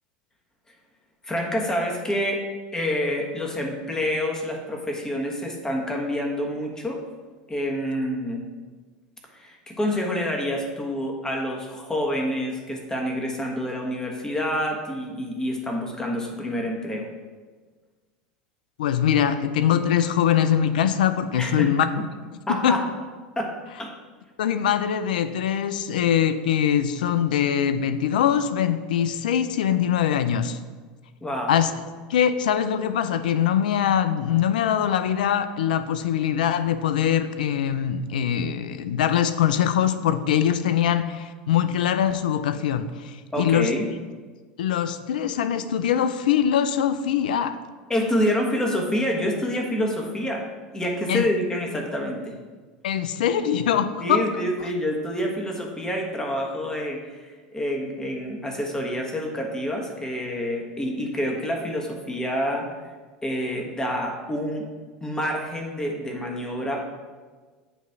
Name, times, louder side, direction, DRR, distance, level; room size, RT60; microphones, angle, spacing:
voice 1, 1.2-2.4 2.7-7.0 7.5-8.4 9.3-17.1 21.4-21.7 22.5-22.8 23.4-23.5 23.8-23.9 31.2-31.5 43.3-43.9 47.9-50.5 50.7-52.3 54.0-62.7 63.2-64.7 65.0-66.8, equal, 15° left, 1 dB, 1.3 m, -27 dB
voice 2, 18.8-21.9 22.6-22.8 24.4-30.6 31.5-31.7 32.1-43.7 44.6-47.6 51.1-51.3 52.8-54.3, left 9 dB, 80° left, 11 dB, 0.4 m, -22 dB
8.1 x 3.1 x 5.9 m, 1.4 s
hypercardioid pair, 95°, 5 cm